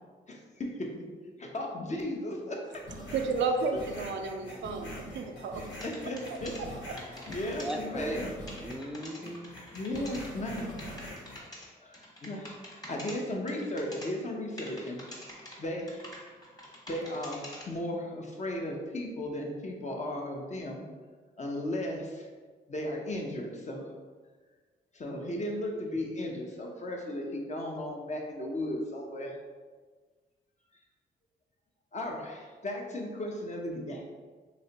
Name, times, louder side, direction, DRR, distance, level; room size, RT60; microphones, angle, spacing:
voice 1, 0.3-0.8 1.4-2.7 3.7-3.9 5.8-6.5 7.3-8.3 9.6-10.8 11.8-15.0 15.6-16.1 16.9-20.8 21.4-22.3 22.7-23.9 24.9-29.4 31.9-34.0, left 1 dB, 35° left, 0 dB, 0.7 m, -35 dB
sound 1, 2.7-8.9 9.2-11.4, equal, 70° left, 1.3 m, -44 dB
voice 2, 3.1-5.6, right 4 dB, 70° right, 5 dB, 0.4 m, -32 dB
sound 2, 5.7-6.6 7.0-7.7 8.0-8.2 8.5-11.7 11.9-13.1 13.5-14.1 14.6-15.5 15.9-17.6, left 1 dB, 20° left, 1.2 m, -46 dB
voice 3, 7.6-9.6, right 1 dB, 5° right, 2 dB, 0.5 m, -38 dB
3.2 x 2.8 x 2.8 m, 1.4 s
cardioid pair, 60°, 20 cm